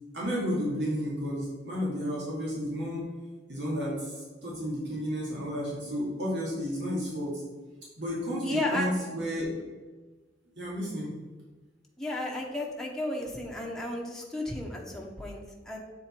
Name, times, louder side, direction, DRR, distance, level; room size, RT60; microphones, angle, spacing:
voice 1, 0.1-3.1 3.5-7.4 8.0-9.5 10.6-11.1, equal, 85° right, -5 dB, 2.3 m, -32 dB
voice 2, 8.4-8.9 12.0-15.8, left 1 dB, 5° left, -2 dB, 0.9 m, -34 dB
7.5 x 3.9 x 4.5 m, 1.3 s
head